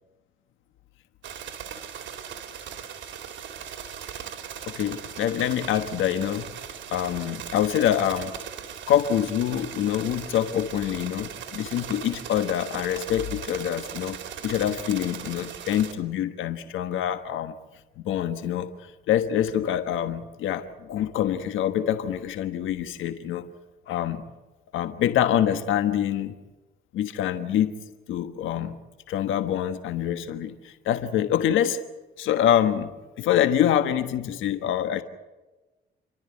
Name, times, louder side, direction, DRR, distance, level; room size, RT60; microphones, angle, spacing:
sound 1, 1.2-15.9, right 8 dB, 70° right, 3.2 m, -39 dB
voice 1, 4.7-6.5 6.9-8.3 8.9-14.2 14.4-17.5 18.0-23.5 23.9-24.3 24.7-26.4 26.9-27.7 28.1-28.8 29.1-31.8 32.2-35.0, left 10 dB, 85° left, 9 dB, 1.4 m, -25 dB
30.0 x 13.0 x 9.8 m, 1.2 s
cardioid pair, 90°, 20 cm